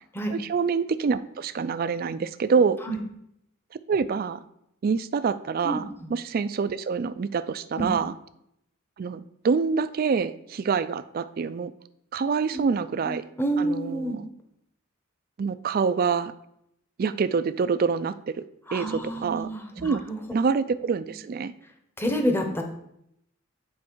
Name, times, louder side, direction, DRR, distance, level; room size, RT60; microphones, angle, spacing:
voice 1, 0.3-2.8 3.9-4.4 4.8-8.1 9.0-11.7 12.1-13.2 13.6-14.3 15.4-16.3 17.0-18.4 18.7-19.5 19.8-20.0 20.3-21.5, right 5 dB, 45° right, 13 dB, 0.3 m, -26 dB
voice 2, 13.0-14.2 18.7-20.2 22.0-22.6, right 1 dB, 10° left, 3 dB, 0.8 m, -28 dB
8.4 x 4.3 x 4.5 m, 0.76 s
head